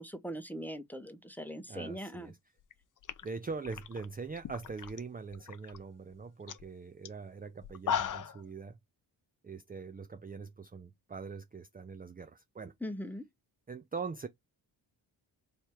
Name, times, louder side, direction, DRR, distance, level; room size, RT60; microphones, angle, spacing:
voice 1, 0.0-2.3 12.8-13.2, equal, 5° left, 0.8 m, -41 dB
voice 2, 1.7-2.4 3.2-8.8 9.4-12.7 13.7-14.3, right 4 dB, 20° right, 0.5 m, -42 dB
sound 1, 2.6-2.7 3.0-5.0 5.3-5.8 6.1-6.2 6.5-6.7 7.1-7.2 7.6-8.4, left 8 dB, 40° left, 0.6 m, -37 dB
3.3 x 2.8 x 4.4 m
supercardioid pair, 50°, 47 cm